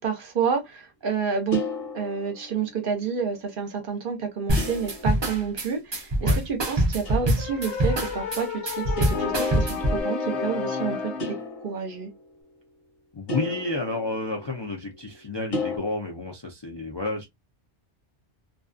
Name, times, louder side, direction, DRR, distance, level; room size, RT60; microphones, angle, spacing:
voice 1, 0.0-1.6 1.9-11.1 11.6-12.1, right 6 dB, 55° right, 0.8 m, -29 dB
sound 1, 1.5-2.8 4.6-5.7 7.0-7.5 9.0-9.4 11.2-12.3 13.3-14.9 15.5-15.8, left 2 dB, 60° left, 1.2 m, -34 dB
sound 2, 4.5-10.0, right 1 dB, 35° right, 0.5 m, -24 dB
sound 3, 7.4-11.4, left 4 dB, 85° left, 1.0 m, -30 dB
voice 2, 13.1-17.3, left 2 dB, 40° left, 0.4 m, -31 dB
2.5 x 2.3 x 2.4 m
omnidirectional pair, 1.1 m